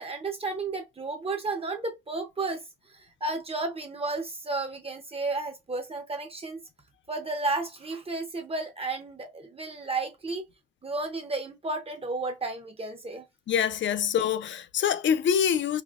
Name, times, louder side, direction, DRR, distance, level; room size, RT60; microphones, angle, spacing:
voice 1, 0.0-2.6 2.9-6.6 7.1-10.5 10.8-13.3, right 3 dB, 30° right, 0.5 m, -32 dB
voice 2, 13.5-15.8, left 8 dB, 65° left, 0.4 m, -25 dB
4.8 x 2.0 x 2.4 m
wide cardioid pair, 165°, 21 cm